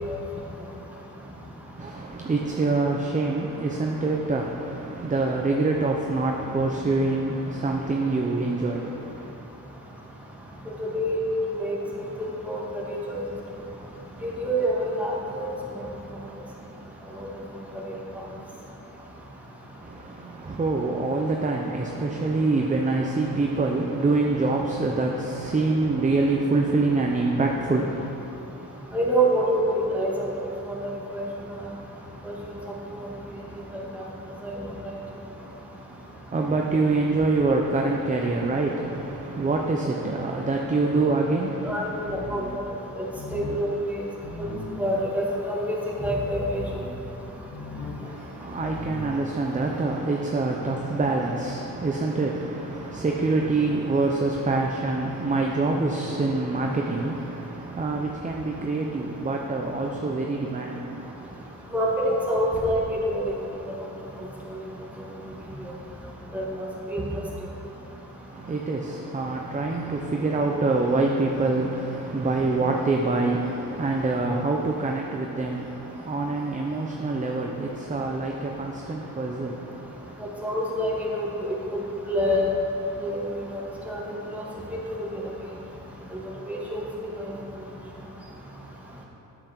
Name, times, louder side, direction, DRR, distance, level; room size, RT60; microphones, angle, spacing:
voice 1, 1.8-9.3 19.8-28.1 36.3-42.5 48.0-61.4 68.3-80.2, right 3 dB, 20° right, 1 dB, 0.8 m, -26 dB
voice 2, 11.5-12.1 12.5-12.6 12.9-13.2 14.2-15.5 17.2-17.3 17.9-18.0 28.9-30.3 31.1-31.2 32.2-32.3 33.9-34.0 34.8-34.9 41.6-42.4 43.0-44.1 44.4-44.5 44.8-46.7 61.7-63.2 64.5-64.6 66.3-67.0 80.4-81.5 82.1-82.5 83.0-83.2 83.5-84.1 84.3-84.4 85.0-85.1 86.1-86.2 86.5-86.8 87.2-87.3, equal, 5° right, -5 dB, 2.2 m, -26 dB
sound 1, 42.0-42.6 43.1-43.6 44.2-44.8 46.4-46.9 47.5-48.0 48.6-49.1, left 3 dB, 90° left, 1.8 m, -37 dB
8.5 x 8.1 x 6.1 m, 3.0 s
cardioid pair, 100°, 35 cm